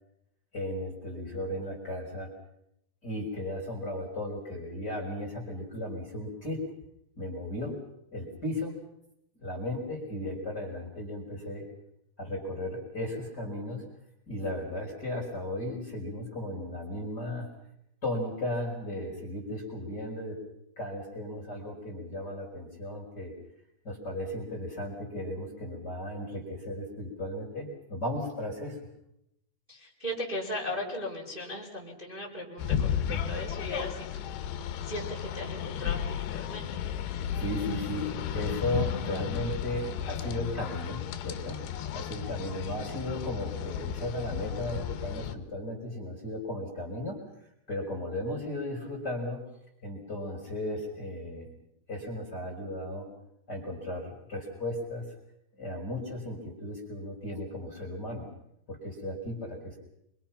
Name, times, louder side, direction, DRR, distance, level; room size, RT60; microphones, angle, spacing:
voice 1, 0.5-2.3 3.0-6.7 7.2-7.8 8.1-8.7 9.4-11.7 12.2-13.8 14.3-17.5 18.0-20.4 20.8-23.3 23.8-28.8 37.3-41.6 41.9-47.2 47.7-49.4 49.8-51.5 51.9-53.1 53.5-55.0 55.6-58.3 58.7-59.8, left 1 dB, 20° left, -1 dB, 5.1 m, -35 dB
voice 2, 29.7-34.3 34.8-36.8, left 1 dB, 10° right, -2 dB, 4.9 m, -37 dB
sound 1, 32.6-45.4, left 9 dB, 65° left, 2.9 m, -34 dB
27.5 x 25.0 x 5.9 m, 0.79 s
omnidirectional pair, 6.0 m